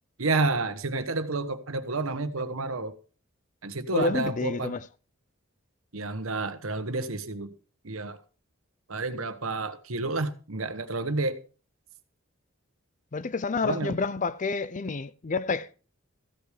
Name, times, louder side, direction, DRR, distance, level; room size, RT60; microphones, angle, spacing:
voice 1, 0.2-3.0 3.6-4.8 5.9-7.5 7.8-8.2 8.9-11.4 13.6-14.0, right 3 dB, 90° right, 1.3 m, -30 dB
voice 2, 3.9-4.9 13.1-15.7, left 3 dB, 40° left, 0.6 m, -29 dB
15.0 x 8.4 x 5.0 m
head